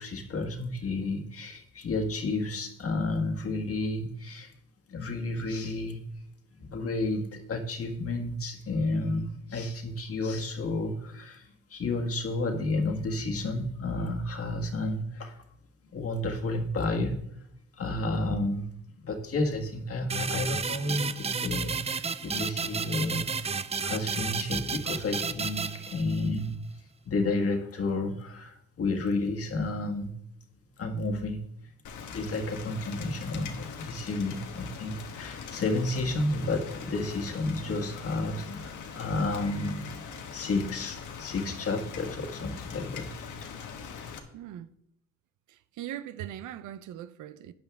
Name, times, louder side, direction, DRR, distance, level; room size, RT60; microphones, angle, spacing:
voice 1, 0.0-4.5 4.9-6.3 6.6-15.4 15.9-17.1 17.8-18.7 19.0-26.6 27.1-30.1 30.8-31.4 32.1-43.1 43.4-43.5, left 2 dB, 50° left, 1.7 m, -31 dB
sound 1, 20.1-26.5, right 5 dB, 20° right, 0.4 m, -32 dB
Rain, 31.8-44.2, left 6 dB, 80° left, 1.4 m, -42 dB
voice 2, 44.3-44.7 45.8-47.5, right 11 dB, 90° right, 0.7 m, -40 dB
12.0 x 8.7 x 3.5 m
cardioid pair, 90°, 30 cm